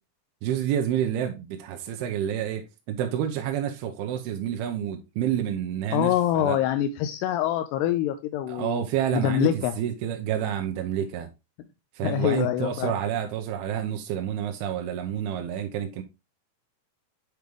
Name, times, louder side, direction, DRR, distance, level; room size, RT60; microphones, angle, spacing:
voice 1, 0.4-6.6 8.5-11.3 12.0-16.0, right 10 dB, 85° right, 2.5 m, -29 dB
voice 2, 5.9-8.9 9.1-9.7 12.0-12.9, left 12 dB, 85° left, 2.7 m, -25 dB
7.9 x 5.2 x 3.1 m
omnidirectional pair, 4.7 m